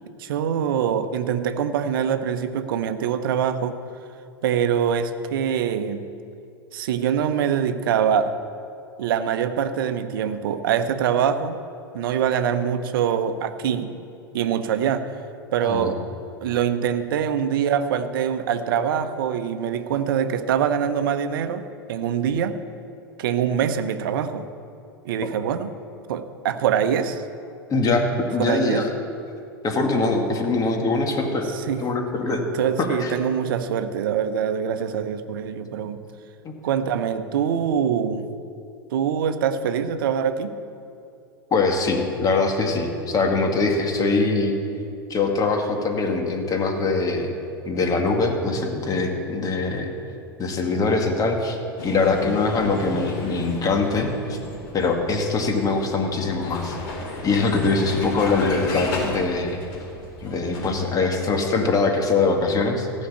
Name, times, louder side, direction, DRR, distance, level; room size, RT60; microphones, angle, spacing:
voice 1, 0.2-3.8 4.4-6.1 6.7-8.4 9.0-11.6 11.9-14.0 14.3-15.1 15.5-16.0 16.4-22.6 23.2-24.5 25.0-25.8 26.1-27.2 28.4-28.9 31.4-31.8 32.5-36.0 36.6-38.3 38.9-40.6, right 8 dB, 65° right, 10 dB, 0.8 m, -24 dB
voice 2, 27.7-28.9 29.6-31.5 31.8-32.4 32.8-33.1 36.4-36.5 41.5-44.5 45.1-47.3 47.6-49.9 50.4-54.4 54.7-56.8 57.2-59.6 60.2-62.9, left 3 dB, 30° left, 3 dB, 2.1 m, -22 dB
Vehicle, 51.8-60.8, left 2 dB, 55° left, 3.6 m, -34 dB
15.0 x 6.4 x 8.6 m, 2.7 s
figure-of-eight pair, 90°, 12 cm